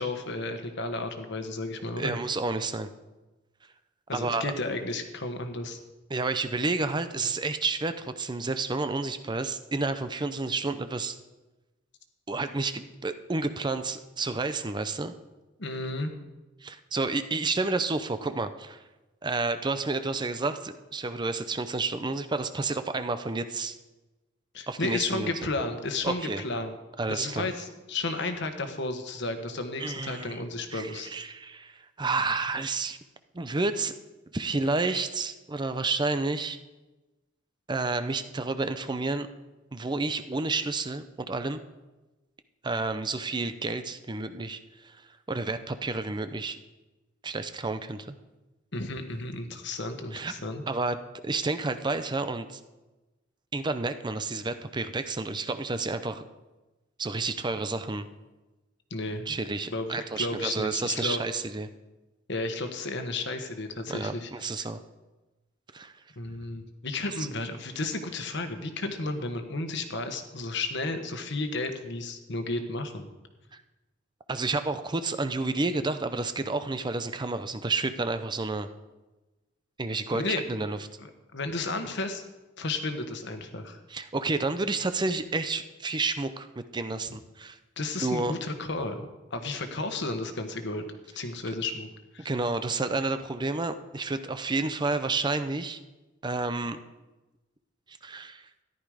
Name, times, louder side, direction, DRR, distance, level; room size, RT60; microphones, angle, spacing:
voice 1, 0.0-2.2 4.1-5.8 15.6-16.1 24.5-26.7 27.1-31.1 48.7-50.6 58.9-59.3 59.7-61.2 62.3-64.3 66.2-73.1 80.1-80.7 81.0-82.2 82.6-83.8 87.8-90.8 91.1-91.9 92.1-92.3, left 2 dB, 65° left, 7 dB, 1.4 m, -33 dB
voice 2, 2.0-2.9 4.1-4.5 6.1-11.2 12.3-15.1 16.6-18.8 19.2-23.8 24.7-25.3 26.0-26.4 27.0-27.5 29.8-30.4 30.7-33.0 33.3-33.9 34.3-36.6 37.7-39.3 39.7-41.6 42.6-45.0 45.3-46.6 47.2-48.1 50.1-50.3 50.7-51.0 51.2-52.6 53.5-56.2 57.0-58.1 59.3-61.7 63.9-64.8 65.7-65.9 67.2-67.3 73.5-73.6 74.3-78.7 79.8-80.8 83.9-86.5 86.7-87.6 88.0-88.3 92.2-95.8 96.2-96.8 97.9-98.5, right 3 dB, 25° right, 10 dB, 0.6 m, -30 dB
14.0 x 11.0 x 4.9 m, 1.1 s
head